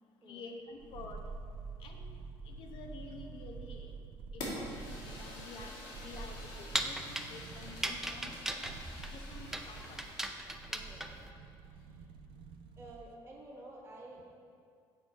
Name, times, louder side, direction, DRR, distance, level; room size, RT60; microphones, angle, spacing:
voice 1, 0.2-1.2 1.8-2.2 2.5-3.9 4.3-5.8 6.0-8.7 9.1-10.0 10.4-10.5, left 3 dB, 65° left, 3 dB, 0.9 m, -50 dB
sound 1, 0.8-13.2 13.4-13.5, right 4 dB, 65° right, 0.4 m, -48 dB
Fire, 4.4-10.3, left 1 dB, 90° left, 1.8 m, -47 dB
sound 2, 6.1-11.3, right 1 dB, 5° right, 0.5 m, -38 dB
voice 2, 10.7-11.1 11.6-12.1 12.8-14.3, right 1 dB, 25° right, -2 dB, 1.2 m, -52 dB
6.8 x 4.1 x 6.2 m, 2.3 s
cardioid pair, 100°, 9 cm